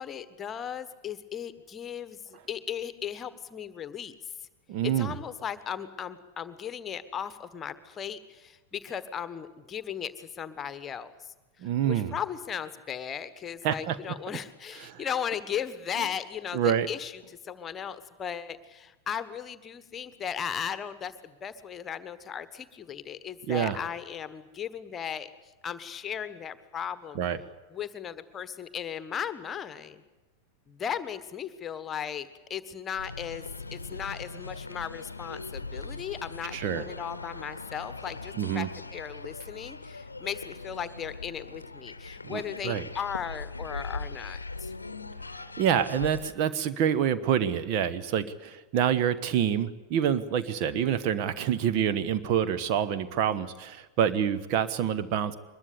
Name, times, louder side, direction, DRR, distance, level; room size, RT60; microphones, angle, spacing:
voice 1, 0.0-4.1 4.8-11.3 11.6-25.3 25.6-27.2 27.7-30.0 30.7-38.7 38.9-44.7, left 8 dB, 25° left, 14 dB, 1.4 m, -36 dB
voice 2, 4.7-5.2 11.6-12.1 13.6-14.0 14.8-15.0 16.5-16.9 23.5-23.8 27.1-27.4 36.5-36.9 38.4-38.7 42.2-42.8 45.3-55.3, right 9 dB, 45° right, 11 dB, 1.2 m, -27 dB
sound 1, 32.9-46.3, left 3 dB, 80° left, 0.8 m, -40 dB
23.0 x 21.5 x 8.4 m, 1.1 s
figure-of-eight pair, 90°, 0 cm